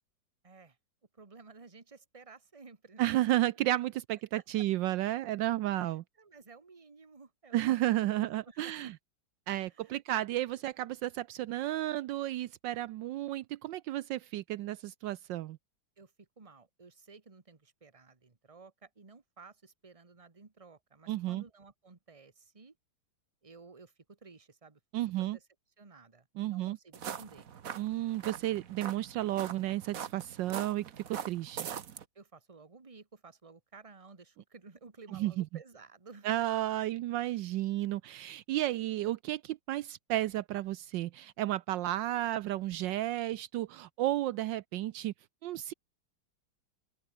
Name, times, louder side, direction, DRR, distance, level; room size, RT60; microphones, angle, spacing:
voice 1, 0.4-0.8 1.2-3.4 4.6-4.7 5.7-8.9 9.7-10.0 16.0-22.7 23.4-24.8 25.2-25.4 25.8-27.5 32.1-36.4, right 4 dB, 20° right, 1.5 m, -54 dB
voice 2, 3.0-6.0 7.5-8.9 9.5-15.6 21.1-21.4 24.9-25.4 26.4-26.8 27.8-31.7 35.1-35.5 36.2-45.1 45.4-45.7, right 14 dB, 80° right, 1.3 m, -32 dB
sound 1, 26.9-32.0, right 8 dB, 50° right, 1.4 m, -43 dB
open air
omnidirectional pair, 2.1 m